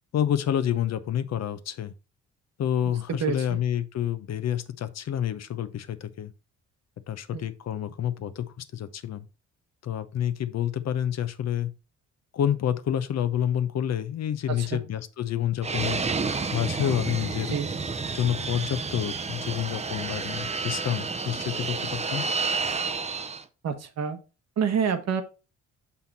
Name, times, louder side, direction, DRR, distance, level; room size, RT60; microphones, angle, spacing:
voice 1, 0.1-1.9 2.6-6.3 7.1-9.3 9.8-11.7 12.3-16.0 16.5-17.5 18.1-22.3, left 10 dB, 60° left, 0.8 m, -28 dB
voice 2, 2.8-3.5 7.3-7.4 14.5-14.8 17.4-17.7 23.6-24.2 24.6-25.2, right 7 dB, 60° right, 1.2 m, -28 dB
Fixed-wing aircraft airplane, 15.6-23.4, right 4 dB, 20° right, 0.6 m, -30 dB
6.0 x 5.7 x 4.1 m
cardioid pair, 90°, 30 cm